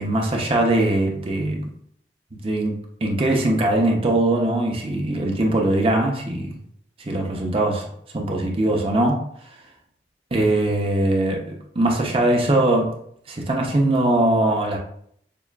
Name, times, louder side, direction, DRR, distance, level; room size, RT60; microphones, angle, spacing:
voice 1, 0.0-1.6 2.4-6.6 7.0-9.2 10.3-12.9 13.3-14.8, right 1 dB, 30° right, 0 dB, 0.7 m, -21 dB
6.7 x 2.4 x 2.3 m, 0.66 s
head